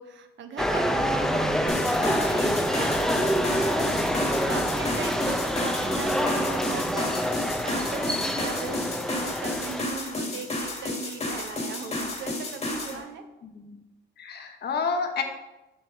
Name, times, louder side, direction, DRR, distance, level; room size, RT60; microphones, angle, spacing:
voice 1, 0.0-13.2, right 6 dB, 65° right, 7 dB, 0.8 m, -39 dB
sound 1, 0.6-9.8, equal, ahead, 0.6 m, -26 dB
sound 2, 1.7-13.0, left 2 dB, 35° left, 1.8 m, -32 dB
voice 2, 11.8-12.1 12.9-13.0 13.4-13.8 14.2-15.2, left 5 dB, 55° left, 4 dB, 1.1 m, -32 dB
7.5 x 2.9 x 5.8 m, 0.99 s
cardioid pair, 90°, 20 cm